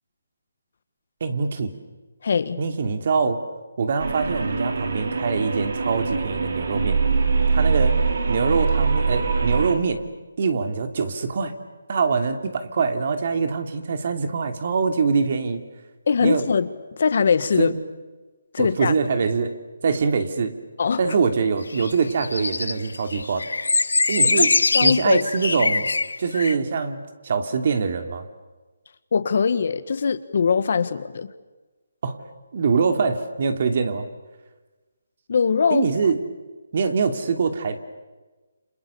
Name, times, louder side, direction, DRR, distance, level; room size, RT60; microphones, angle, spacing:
voice 1, 1.2-1.7 2.6-3.4 3.8-7.0 7.5-8.0 8.3-10.0 10.4-11.5 11.9-15.6 16.2-16.5 17.6-17.8 18.6-19.6 19.8-20.5 21.0-23.5 24.1-24.5 24.8-25.9 26.2-28.3 32.0-32.2 32.5-34.1 35.7-36.2 36.7-37.8, right 5 dB, 50° right, 7 dB, 2.8 m, -23 dB
voice 2, 2.2-2.6 16.1-16.7 17.0-17.7 18.5-18.9 20.8-21.0 24.2-24.5 24.7-25.2 29.1-31.3 35.3-35.9, left 5 dB, 55° left, 13 dB, 1.6 m, -21 dB
sound 1, 4.0-9.7, right 4 dB, 65° right, 4.1 m, -23 dB
sound 2, 21.7-26.5, left 3 dB, 85° left, 0.8 m, -22 dB
29.5 x 27.5 x 7.1 m, 1.2 s
hypercardioid pair, 160°, 0 cm